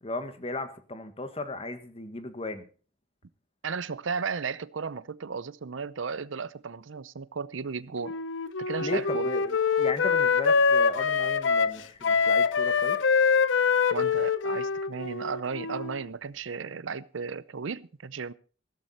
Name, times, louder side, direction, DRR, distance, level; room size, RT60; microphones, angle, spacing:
voice 1, 0.0-2.6 8.8-13.0, left 2 dB, 30° left, 1.6 m, -36 dB
voice 2, 3.6-8.2 8.6-9.3 13.9-18.3, right 5 dB, 90° right, 0.6 m, -35 dB
Wind instrument woodwind instrument, 8.0-16.0, left 5 dB, 75° left, 0.8 m, -25 dB
15.0 x 13.0 x 4.3 m
head